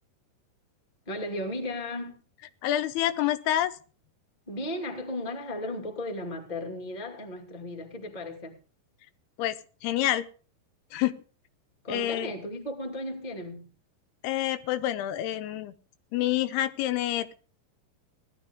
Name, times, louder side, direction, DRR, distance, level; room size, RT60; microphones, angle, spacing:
voice 1, 1.0-2.2 4.5-8.5 11.8-13.7, left 1 dB, 15° left, 1.7 m, -35 dB
voice 2, 2.6-3.7 9.4-9.6 9.8-10.3 10.9-11.2 11.9-12.3 14.2-15.7 16.1-17.3, left 13 dB, 85° left, 2.8 m, -27 dB
18.0 x 12.0 x 3.7 m
omnidirectional pair, 4.6 m